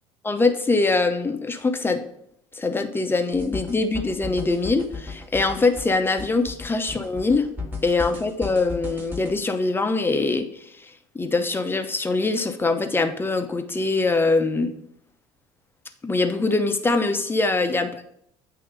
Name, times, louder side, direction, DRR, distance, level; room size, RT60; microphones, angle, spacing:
voice 1, 0.2-2.0 2.6-7.5 7.8-10.5 11.1-14.7 16.0-18.1, left 3 dB, 15° left, 7 dB, 0.8 m, -23 dB
sound 1, 3.3-9.3, left 3 dB, 15° right, 1.7 m, -36 dB
8.6 x 2.9 x 5.1 m, 0.70 s
supercardioid pair, 80°, 13 cm